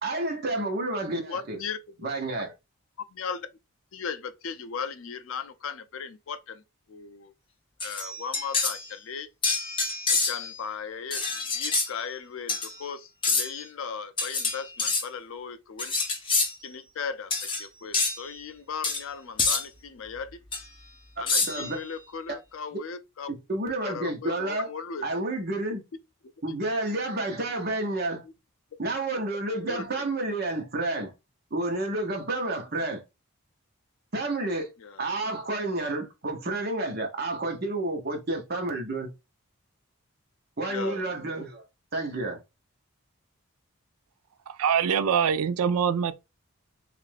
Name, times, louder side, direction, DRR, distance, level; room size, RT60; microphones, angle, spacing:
voice 1, 0.0-1.6 2.0-2.5 21.4-21.8 23.3-24.7 25.0-25.8 26.4-28.2 28.8-31.1 31.5-33.0 34.1-34.7 35.0-39.1 40.6-41.6 41.9-42.4, right 2 dB, 45° right, 0.9 m, -30 dB
voice 2, 1.3-2.1 3.1-3.5 3.9-6.6 6.9-7.3 7.8-9.3 10.2-11.2 11.5-16.0 16.6-17.3 17.6-20.4 21.2-23.4 23.8-25.0 28.2-28.3 29.7-29.9 34.8-35.1 40.7-41.1, left 6 dB, 65° left, 0.4 m, -37 dB
sound 1, 7.8-8.8 9.4-10.6 11.1-11.9 12.5-12.7 13.2-13.6 14.2-15.0 15.8-16.5 17.3-17.6 17.9-18.2 18.8-19.0 19.4-19.6 20.5-20.6 21.3-21.7, left 4 dB, 25° left, 0.6 m, -27 dB
voice 3, 44.5-46.1, right 7 dB, 80° right, 0.3 m, -24 dB
3.2 x 2.5 x 3.3 m
head